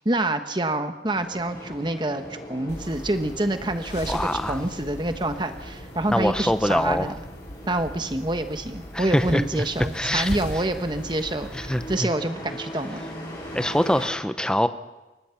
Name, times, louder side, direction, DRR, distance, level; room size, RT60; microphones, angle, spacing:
voice 1, 0.0-7.2 7.7-13.0, right 1 dB, 25° right, 8 dB, 1.2 m, -27 dB
sound 1, 1.1-14.1, equal, 25° left, 7.8 m, -41 dB
sound 2, 2.7-12.0, left 1 dB, 75° left, 2.4 m, -39 dB
voice 2, 4.1-4.6 6.1-7.2 8.9-9.6 9.9-10.3 11.5-12.1 13.5-14.7, equal, 5° left, 11 dB, 0.8 m, -24 dB
29.0 x 16.0 x 5.9 m, 1.1 s
head